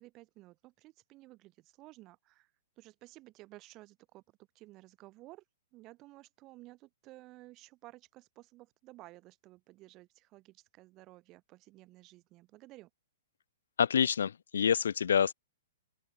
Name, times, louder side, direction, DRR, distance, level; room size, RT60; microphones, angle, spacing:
voice 1, 0.0-4.2 4.5-5.4 5.7-12.9, right 19 dB, 30° right, 4.3 m, -55 dB
voice 2, 13.8-15.3, left 7 dB, 65° left, 0.5 m, -27 dB
open air
figure-of-eight pair, 115°, 0 cm